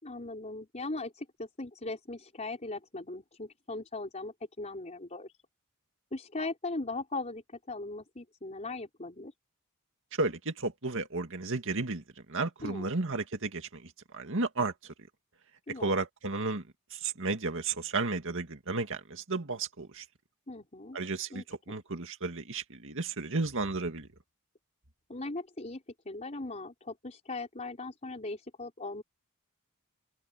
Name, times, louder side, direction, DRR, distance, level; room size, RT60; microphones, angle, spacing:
voice 1, 0.0-5.3 6.1-9.3 12.6-12.9 15.7-16.0 20.5-21.0 21.3-21.4 25.1-29.0, left 2 dB, 30° left, 4.2 m, -39 dB
voice 2, 10.2-14.7 15.8-16.6 16.9-20.0 20.9-24.1, right 3 dB, 60° right, 2.2 m, -33 dB
head